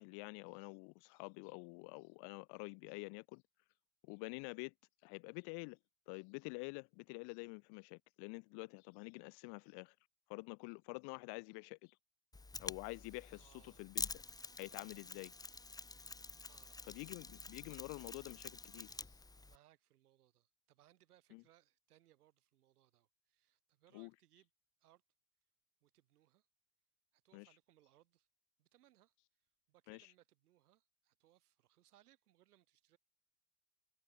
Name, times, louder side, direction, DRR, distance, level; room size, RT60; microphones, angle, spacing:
voice 1, 0.0-3.4 4.0-4.7 5.0-5.8 6.1-9.9 10.3-12.0 12.6-14.1 14.6-15.3 16.9-19.0 21.3-21.4 23.9-24.1 27.3-27.5 29.9-30.1, left 33 dB, 60° left, 1.7 m, -48 dB
Mechanisms, 12.3-19.6, left 3 dB, 10° left, 1.1 m, -48 dB
voice 2, 13.3-13.9 14.7-15.0 16.5-17.0 19.2-24.5 24.8-25.0 25.8-26.5 27.1-28.3 28.6-33.0, right 13 dB, 80° right, 7.1 m, -71 dB
hypercardioid pair, 90°, 44 cm